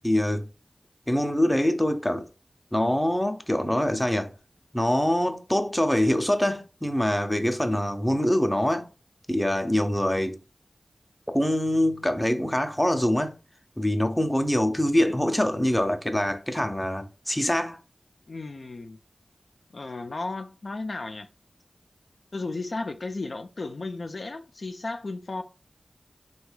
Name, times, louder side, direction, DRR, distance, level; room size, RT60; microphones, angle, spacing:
voice 1, 0.0-0.5 1.1-2.3 2.7-4.3 4.7-8.9 9.3-10.4 11.3-13.4 13.8-17.8, left 1 dB, 10° left, 0.5 m, -24 dB
voice 2, 18.3-19.0 19.7-21.3 22.3-25.4, left 3 dB, 65° left, 0.3 m, -34 dB
3.3 x 2.2 x 3.2 m
wide cardioid pair, 50°, 0 cm